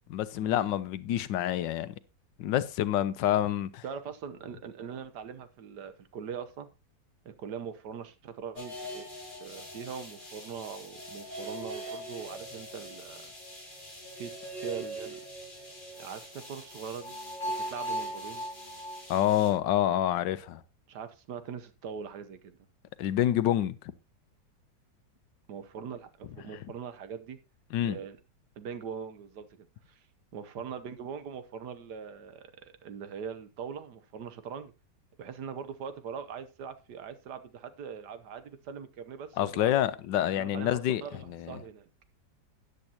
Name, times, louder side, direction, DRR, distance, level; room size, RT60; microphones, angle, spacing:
voice 1, 0.1-1.9 2.4-3.8 19.1-20.6 23.0-23.8 27.7-28.0 39.4-41.0 41.3-41.6, left 12 dB, 90° left, 1.4 m, -27 dB
voice 2, 3.8-6.7 7.2-9.1 9.4-13.3 13.6-13.7 14.2-15.2 16.0-17.1 17.6-18.4 20.9-22.6 25.5-27.4 27.8-28.2 28.6-30.0 30.3-34.7 35.2-39.7 40.4-41.9, right 7 dB, 70° right, 1.5 m, -42 dB
sound 1, 8.6-19.5, equal, 25° left, 3.4 m, -40 dB
13.5 x 9.8 x 2.8 m
omnidirectional pair, 1.9 m